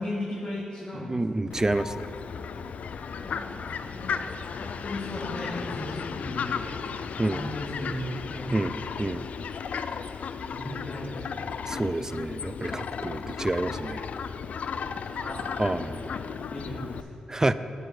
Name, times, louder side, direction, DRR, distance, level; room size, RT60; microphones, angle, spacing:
voice 1, 0.0-1.5 3.2-4.2 4.5-6.9 7.2-8.8 10.5-11.4 15.1-15.6 16.0-16.1 16.4-17.0, left 1 dB, 40° left, -6 dB, 1.7 m, -36 dB
voice 2, 1.1-2.0 7.2-7.4 8.5-9.3 11.7-14.1 15.6-16.1 17.3-17.5, right 2 dB, 25° right, 14 dB, 0.3 m, -28 dB
Fowl, 1.5-17.0, left 6 dB, 70° left, 0.3 m, -35 dB
8.5 x 4.5 x 6.5 m, 2.6 s
supercardioid pair, 45°, 3 cm